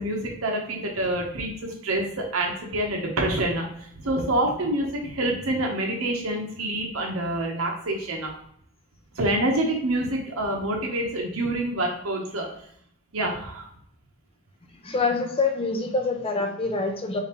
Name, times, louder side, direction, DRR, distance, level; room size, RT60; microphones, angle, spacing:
voice 1, 0.0-3.7 4.0-8.3 9.2-12.5 13.1-13.7, right 1 dB, 85° right, 0 dB, 0.9 m, -27 dB
voice 2, 14.8-17.2, left 3 dB, 30° left, 4 dB, 0.7 m, -25 dB
4.0 x 3.9 x 2.9 m, 0.69 s
head